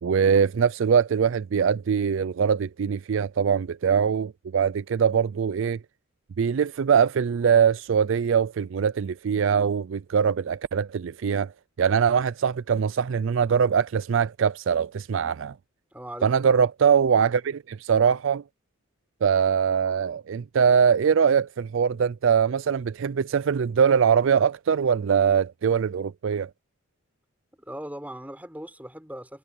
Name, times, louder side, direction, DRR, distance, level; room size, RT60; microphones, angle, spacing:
voice 1, 0.0-5.8 6.4-11.5 11.8-15.6 16.2-18.4 19.2-26.5, right 7 dB, 60° right, 0.4 m, -22 dB
voice 2, 15.9-16.5 27.6-29.4, right 1 dB, 5° right, 6.5 m, -39 dB
head